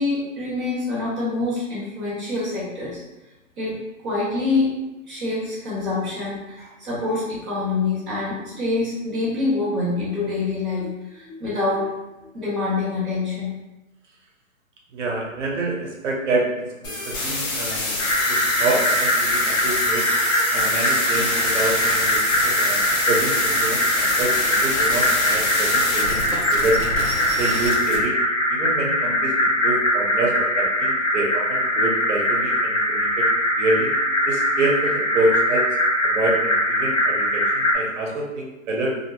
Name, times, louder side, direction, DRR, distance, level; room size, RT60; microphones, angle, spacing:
voice 1, 0.0-3.0 3.6-3.7 4.0-4.7 5.1-11.9 12.3-13.5, left 3 dB, 5° right, -20 dB, 0.3 m, -25 dB
voice 2, 14.9-18.0 18.3-20.0 20.5-26.8 27.4-28.2 28.5-33.3 33.6-33.9 34.3-35.7 36.0-38.9, right 2 dB, 60° right, 0 dB, 0.7 m, -27 dB
sound 1, 16.8-28.0, left 2 dB, 75° left, 1.0 m, -27 dB
sound 2, 18.0-37.7, equal, 55° left, 1.0 m, -22 dB
2.6 x 2.0 x 2.9 m, 1.0 s
hypercardioid pair, 140°, 41 cm